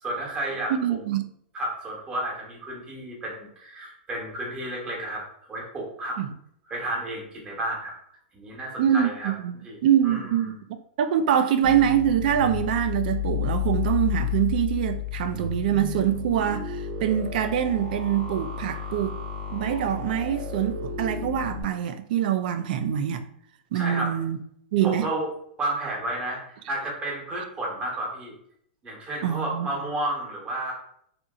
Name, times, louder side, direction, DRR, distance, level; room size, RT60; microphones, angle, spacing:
voice 1, 0.0-1.0 1.5-5.2 5.5-6.2 6.7-7.9 8.3-9.3 9.6-10.3 23.7-24.1 24.8-25.3 25.6-26.4 26.7-28.3 28.8-30.7, right 1 dB, 15° right, 0.9 m, -32 dB
voice 2, 0.7-1.2 6.2-6.3 8.8-9.5 9.8-10.5 11.0-19.1 19.5-23.3 23.7-24.4 24.7-25.1 29.2-29.7, right 10 dB, 55° right, 0.3 m, -24 dB
sound 1, 11.6-21.6, left 8 dB, 75° right, 1.0 m, -31 dB
2.8 x 2.5 x 2.3 m
hypercardioid pair, 145°, 6 cm